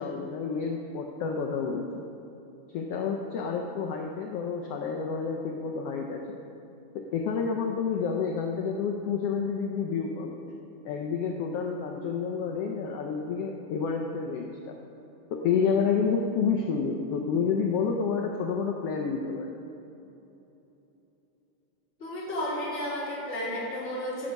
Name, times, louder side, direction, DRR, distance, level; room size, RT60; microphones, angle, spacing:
voice 1, 0.0-1.9 2.7-6.4 6.9-10.4 10.8-14.8 15.3-19.6, left 5 dB, 80° left, 2 dB, 1.4 m, -29 dB
voice 2, 22.0-24.3, equal, 25° left, -7 dB, 2.7 m, -32 dB
14.5 x 6.3 x 5.3 m, 3.0 s
omnidirectional pair, 3.5 m